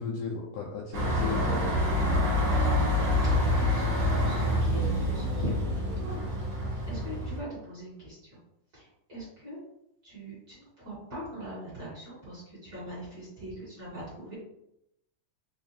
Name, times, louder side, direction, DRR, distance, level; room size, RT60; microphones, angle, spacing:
voice 1, 0.0-2.2, left 5 dB, 90° left, -3 dB, 1.4 m, -35 dB
sound 1, 0.9-7.4, left 1 dB, 65° right, 1.1 m, -27 dB
voice 2, 3.3-8.4 8.7-9.6 10.0-14.3, right 1 dB, 45° right, -9 dB, 1.5 m, -41 dB
4.7 x 2.4 x 2.7 m, 0.82 s
omnidirectional pair, 3.4 m